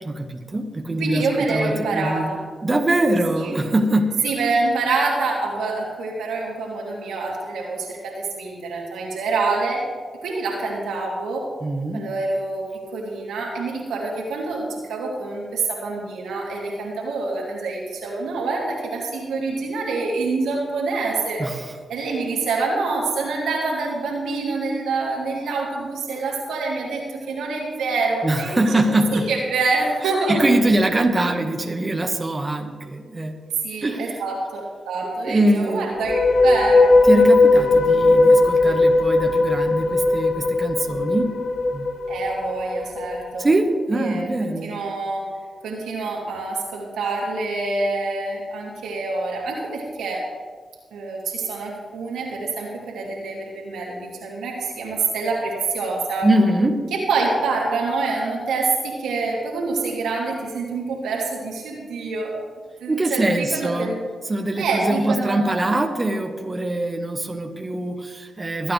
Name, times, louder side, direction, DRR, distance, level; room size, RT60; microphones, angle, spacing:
voice 1, 0.0-2.3 2.6-4.3 11.6-12.0 21.4-21.8 28.2-29.2 30.3-33.3 33.8-34.1 35.1-35.9 37.1-41.3 41.7-41.9 43.4-44.8 56.2-56.8 62.9-63.9 64.2-68.7, right 1 dB, 35° right, 2 dB, 1.7 m, -23 dB
voice 2, 1.0-2.4 3.4-3.6 4.2-9.8 10.2-11.5 11.9-12.6 12.9-28.8 29.1-30.4 33.6-36.9 42.1-43.5 43.9-45.3 45.6-50.3 50.9-56.3 56.9-62.3 62.8-64.0 64.6-65.6, right 3 dB, 85° right, -2 dB, 2.7 m, -26 dB
sound 1, 35.9-43.2, left 2 dB, 70° left, 1.0 m, -17 dB
24.0 x 9.1 x 3.4 m, 1.5 s
supercardioid pair, 40°, 0 cm